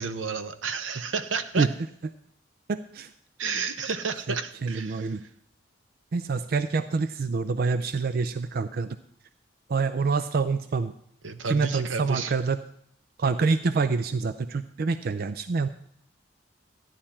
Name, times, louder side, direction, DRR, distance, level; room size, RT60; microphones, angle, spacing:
voice 1, 0.0-1.7 3.4-5.1 11.2-12.3, right 5 dB, 85° right, 11 dB, 0.8 m, -31 dB
voice 2, 2.7-3.1 4.3-4.4 4.6-5.2 6.1-9.0 9.7-10.9 11.5-12.6 13.2-15.7, right 4 dB, 50° right, 12 dB, 0.4 m, -26 dB
14.0 x 10.0 x 4.3 m, 0.70 s
head